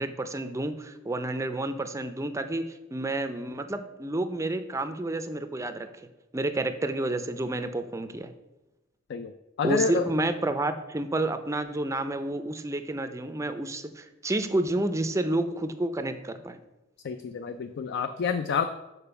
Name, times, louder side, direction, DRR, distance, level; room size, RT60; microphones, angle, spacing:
voice 1, 0.0-5.9 6.3-8.3 9.6-16.6, right 2 dB, 15° right, 9 dB, 0.4 m, -30 dB
voice 2, 9.6-10.1 17.0-18.7, left 5 dB, 55° left, 9 dB, 0.4 m, -28 dB
6.9 x 4.4 x 5.6 m, 1.0 s
head